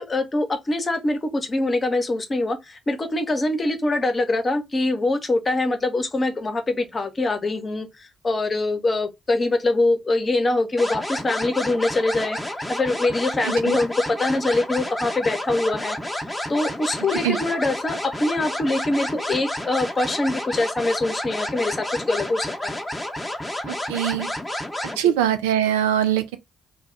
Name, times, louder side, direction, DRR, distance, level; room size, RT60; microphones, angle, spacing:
voice 1, 0.0-12.4 12.7-16.0 16.5-22.8 24.9-25.1, left 2 dB, 35° left, 0.7 m, -24 dB
sound 1, 10.8-25.0, left 1 dB, 5° left, 0.8 m, -30 dB
voice 2, 13.4-13.8 17.2-17.4 23.7-24.3 25.0-26.4, right 10 dB, 80° right, 0.3 m, -22 dB
2.2 x 2.1 x 3.7 m
hypercardioid pair, 40°, 0 cm